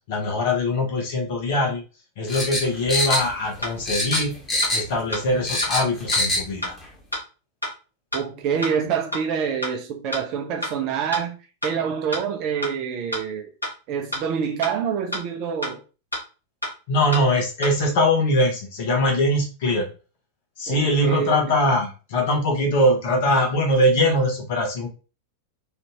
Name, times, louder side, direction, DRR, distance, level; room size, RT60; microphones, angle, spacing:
voice 1, 0.1-1.8 2.2-4.3 4.7-6.8 16.9-19.9 20.6-24.9, left 1 dB, 50° left, 1.2 m, -22 dB
sound 1, 2.3-3.6 3.9-5.0 5.3-6.5 6.8-6.9, left 1 dB, 15° left, 1.4 m, -24 dB
sound 2, 2.6-2.7 3.1-3.2 3.6-3.7 4.1-4.2 4.6-4.7 5.1-5.2 5.6-5.7 6.1-6.2 6.6-6.7 7.1-7.2 7.6-7.7 8.1-8.2 8.6-8.7 9.1-9.2 9.6-9.7 10.1-10.2 10.6-10.7 11.1-11.2 11.6-11.7 12.1-12.2 12.6-12.7 13.1-13.2 13.6-13.7 14.1-14.2 14.6-14.7 15.1-15.2 15.6-15.7 16.1-16.2 16.6-16.7 17.1-17.2 17.6-17.7, equal, 90° left, 1.3 m, -28 dB
voice 2, 8.1-11.4 11.6-13.5 13.9-15.8 20.7-21.4, right 7 dB, 40° right, 0.6 m, -26 dB
3.2 x 2.7 x 3.0 m
figure-of-eight pair, 90°, 0 cm